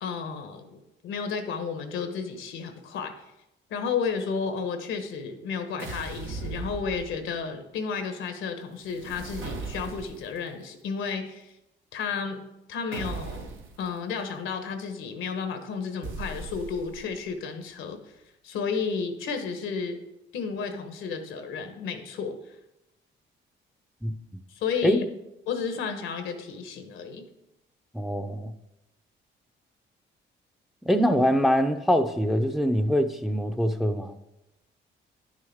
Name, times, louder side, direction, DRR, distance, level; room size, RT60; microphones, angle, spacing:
voice 1, 0.0-3.1 3.7-11.5 11.9-12.4 12.7-13.5 13.8-18.0 18.4-20.0 20.3-22.3 24.5-25.0 25.5-27.3, left 5 dB, 80° left, 1.2 m, -32 dB
sound 1, 5.8-7.4 8.8-10.4 12.9-13.8 16.0-17.1, right 4 dB, 85° right, 1.2 m, -38 dB
voice 2, 24.0-24.4 24.8-25.0 27.9-28.5 30.8-34.2, equal, ahead, 0.6 m, -24 dB
10.5 x 6.5 x 3.6 m
cardioid pair, 90°, 20 cm